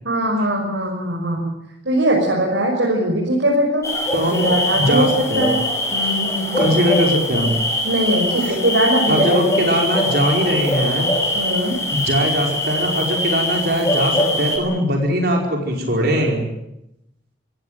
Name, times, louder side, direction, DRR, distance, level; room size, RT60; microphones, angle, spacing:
voice 1, 0.0-1.5 1.8-3.8 4.4-5.1 5.3-5.6 5.9-6.6 7.8-9.4 11.3-11.8, right 1 dB, 80° right, -2 dB, 6.2 m, -20 dB
sound 1, 3.8-14.6, left 1 dB, 15° left, 5.5 m, -22 dB
voice 2, 4.1-5.5 6.5-7.6 8.4-8.6 9.1-11.1 12.0-16.5, equal, 60° right, 1 dB, 5.1 m, -20 dB
26.0 x 16.5 x 9.2 m, 0.84 s
head